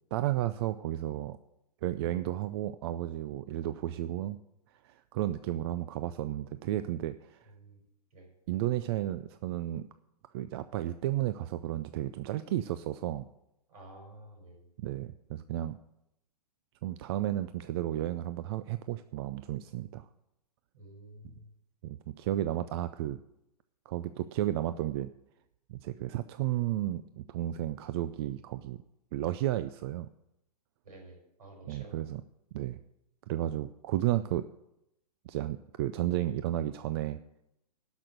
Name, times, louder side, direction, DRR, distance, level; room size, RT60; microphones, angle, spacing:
voice 1, 0.1-1.4 1.8-4.4 4.8-7.5 8.5-9.9 10.3-13.3 14.8-15.8 16.8-20.1 21.8-23.2 23.9-25.1 25.7-28.8 29.1-30.1 31.7-32.2 32.5-32.8 33.3-34.5 35.3-37.2, right 13 dB, 40° right, 12 dB, 0.4 m, -33 dB
voice 2, 7.4-7.8 8.1-8.3 13.7-14.7 20.7-21.5 30.8-32.1, right 1 dB, 65° right, 2 dB, 5.9 m, -51 dB
12.0 x 6.2 x 7.8 m, 0.85 s
hypercardioid pair, 125°, 21 cm